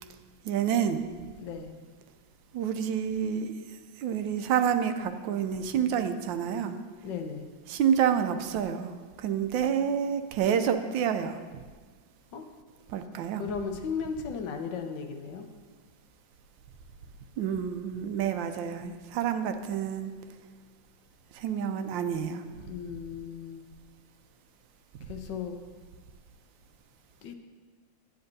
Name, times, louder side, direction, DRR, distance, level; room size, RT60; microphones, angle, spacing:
voice 1, 0.4-1.0 2.5-3.5 4.0-6.8 7.7-8.9 9.2-11.4 12.9-13.4 17.4-20.1 21.3-22.4, right 8 dB, 80° right, 8 dB, 1.3 m, -28 dB
voice 2, 1.4-1.7 7.0-7.5 12.3-12.5 13.4-15.5 22.6-23.6 25.1-25.6 27.2-27.4, left 6 dB, 75° left, 5 dB, 1.3 m, -36 dB
10.5 x 9.5 x 2.7 m, 1.5 s
omnidirectional pair, 2.0 m